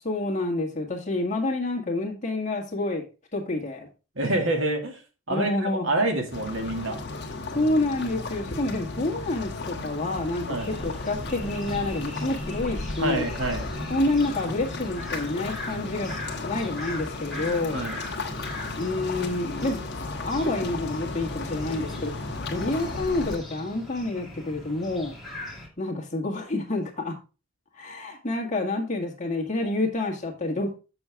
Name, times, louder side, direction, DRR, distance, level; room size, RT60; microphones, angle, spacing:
voice 1, 0.0-3.0 3.3-3.9 5.3-5.9 7.5-13.3 13.9-16.2 16.4-17.8 18.8-22.1 22.5-25.2 25.8-27.1 27.7-30.7, left 2 dB, 35° left, 1 dB, 1.8 m, -28 dB
voice 2, 4.2-5.0 5.3-7.0 10.5-10.7 13.0-13.6 17.7-18.0, right 2 dB, 75° right, 3 dB, 2.0 m, -27 dB
sound 1, 6.3-23.4, left 2 dB, 55° left, 1.3 m, -34 dB
sound 2, 10.6-25.7, left 1 dB, ahead, 2.1 m, -41 dB
7.2 x 6.9 x 3.4 m, 0.32 s
head